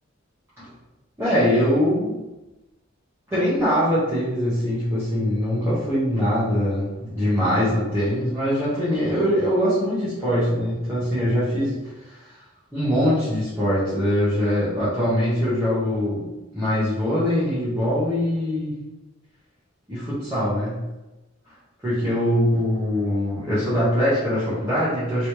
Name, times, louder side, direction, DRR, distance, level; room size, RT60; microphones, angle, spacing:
voice 1, 1.2-2.1 3.3-12.3 12.7-16.2 16.5-18.7 19.9-20.8 21.8-25.3, equal, 15° right, -12 dB, 1.0 m, -22 dB
3.1 x 3.1 x 2.9 m, 1.0 s
head